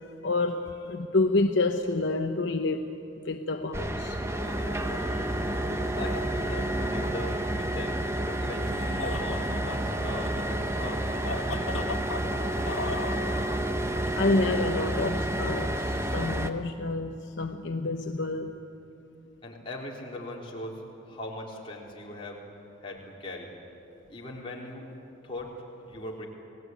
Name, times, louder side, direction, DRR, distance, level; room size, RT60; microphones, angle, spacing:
voice 1, 0.0-2.9 3.2-4.2 14.1-18.6, left 2 dB, 60° left, 0.9 m, -28 dB
sound 1, 3.7-16.5, right 1 dB, 15° right, 0.9 m, -30 dB
sound 2, 4.1-14.4, left 3 dB, 80° left, 1.7 m, -40 dB
voice 2, 5.0-11.7 12.5-13.1 19.4-22.4 22.8-23.5 24.1-24.9 25.2-25.5 25.9-26.3, left 1 dB, 25° left, 3.9 m, -40 dB
29.5 x 18.0 x 9.4 m
head